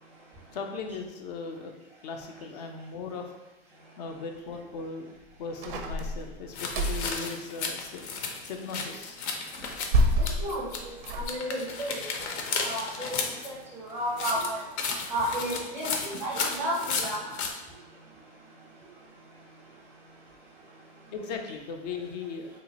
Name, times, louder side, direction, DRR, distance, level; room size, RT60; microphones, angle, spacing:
voice 1, 0.5-1.7 2.0-3.3 4.0-5.1 5.4-8.1 8.4-9.2 21.1-22.5, left 4 dB, 40° left, 4 dB, 0.4 m, -38 dB
sound 1, 5.6-7.2 9.6-11.3, right 1 dB, 50° right, 0.4 m, -27 dB
sound 2, 6.5-10.8 11.1-13.5 14.1-17.5, left 5 dB, 80° left, 0.7 m, -33 dB
voice 2, 10.4-10.7 11.1-12.0 12.6-13.1 13.4-14.6 15.1-17.2, equal, 5° right, -5 dB, 0.6 m, -32 dB
2.9 x 2.4 x 3.9 m, 1.1 s
supercardioid pair, 165°, 33 cm